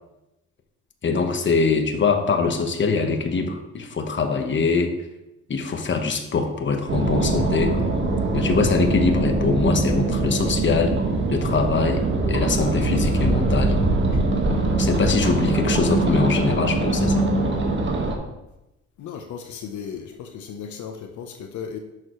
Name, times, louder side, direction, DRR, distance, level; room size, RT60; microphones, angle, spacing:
voice 1, 1.0-4.9 5.5-7.8 8.3-10.9 11.3-13.7 14.8-17.3, left 4 dB, 40° left, 5 dB, 1.3 m, -23 dB
sound 1, 6.9-18.1, right 2 dB, 40° right, 1.7 m, -22 dB
voice 2, 19.0-21.8, left 7 dB, 75° left, 5 dB, 0.9 m, -35 dB
10.5 x 6.7 x 3.2 m, 0.94 s
cardioid pair, 90°, 30 cm